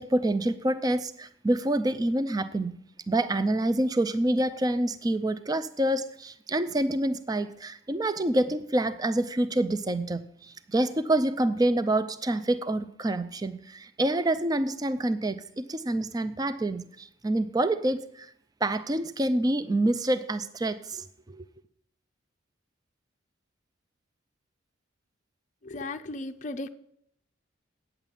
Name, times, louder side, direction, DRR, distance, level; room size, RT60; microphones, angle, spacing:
voice 1, 0.0-2.7 3.1-18.3 18.6-21.4, right 1 dB, 20° right, 0.4 m, -27 dB
voice 2, 25.6-26.7, left 2 dB, 40° left, 0.5 m, -36 dB
9.0 x 7.4 x 8.8 m
head